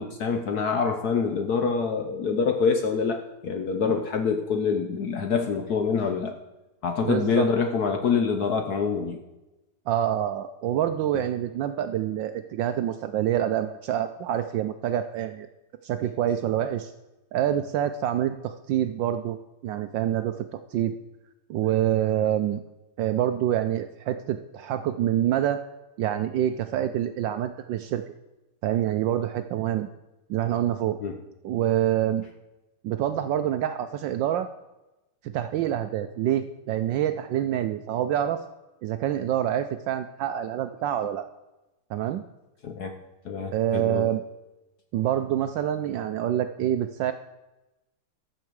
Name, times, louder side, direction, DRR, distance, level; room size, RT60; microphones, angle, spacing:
voice 1, 0.0-6.4 6.8-9.2 31.0-31.2 42.6-42.9 43.2-44.1, left 5 dB, 65° left, 6 dB, 1.0 m, -26 dB
voice 2, 7.0-7.5 9.9-15.5 15.8-16.9 17.3-19.4 19.6-20.9 21.5-22.6 23.0-25.6 26.0-28.0 28.6-29.9 30.3-31.0 31.4-32.2 32.8-34.5 35.2-38.4 38.8-41.3 41.9-42.2 43.5-44.2 44.9-47.1, right 11 dB, 75° right, 9 dB, 1.1 m, -26 dB
14.0 x 6.7 x 4.7 m, 1.0 s
omnidirectional pair, 2.4 m